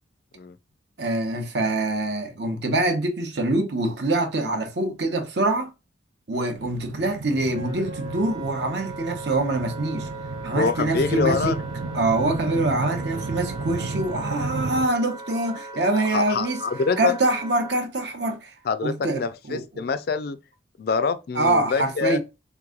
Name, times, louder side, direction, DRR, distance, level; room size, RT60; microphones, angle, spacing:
voice 1, 1.0-5.7 6.3-10.1 10.4-11.6 11.9-16.6 17.0-18.5 18.8-19.9 21.3-22.2, right 2 dB, 60° right, 0.8 m, -25 dB
sound 1, 6.5-14.9, right 3 dB, 85° right, 0.6 m, -33 dB
Wind instrument woodwind instrument, 7.5-17.8, right 2 dB, 25° right, 0.6 m, -39 dB
voice 2, 10.5-11.6 15.7-17.1 18.7-20.4 20.8-22.2, left 5 dB, 50° left, 0.4 m, -26 dB
3.5 x 3.0 x 3.7 m
head